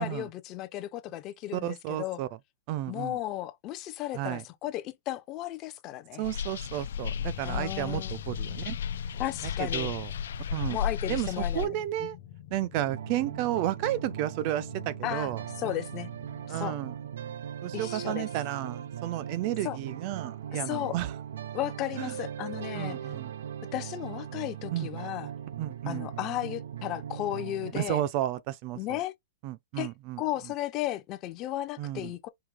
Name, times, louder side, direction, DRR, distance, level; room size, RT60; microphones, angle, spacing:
voice 1, 0.0-2.2 2.9-6.3 7.4-8.1 9.2-9.9 10.7-11.7 15.0-15.3 15.6-16.1 16.5-16.8 17.7-18.3 19.6-19.8 20.7-20.9 21.5-23.0 23.7-25.3 25.9-28.0 28.7-29.1 29.8-29.9 30.2-32.3, left 14 dB, 25° left, 0.5 m, -34 dB
voice 2, 1.5-2.3 2.7-3.2 4.1-4.4 6.2-8.8 9.6-10.1 10.5-10.8 11.1-12.2 12.5-15.4 16.5-16.9 17.6-21.1 22.0-22.1 22.7-23.3 24.7-24.9 25.6-26.1 27.7-29.0 29.4-30.5 31.8-32.1, right 13 dB, 35° right, 0.4 m, -32 dB
Derelict Basement.R, 6.2-11.7, left 8 dB, 80° left, 0.3 m, -34 dB
sound 1, 6.6-16.7, left 11 dB, 40° left, 0.9 m, -48 dB
sound 2, 12.7-27.7, right 9 dB, 75° right, 0.7 m, -39 dB
4.7 x 2.7 x 3.7 m
supercardioid pair, 170°, 0 cm